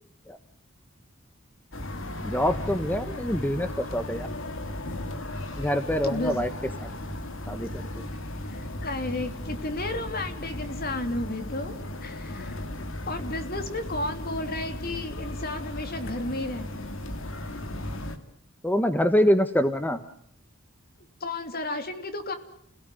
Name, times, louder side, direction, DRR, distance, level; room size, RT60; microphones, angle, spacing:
sound 1, 1.7-18.2, left 1 dB, 65° left, 2.7 m, -36 dB
voice 1, 2.2-4.3 5.6-6.5 7.5-7.7 18.6-20.0, equal, 10° left, 10 dB, 1.2 m, -25 dB
voice 2, 6.0-6.4 8.5-12.6 13.0-16.9 21.2-22.4, left 2 dB, 45° left, 8 dB, 3.0 m, -33 dB
29.5 x 17.5 x 9.8 m, 0.64 s
head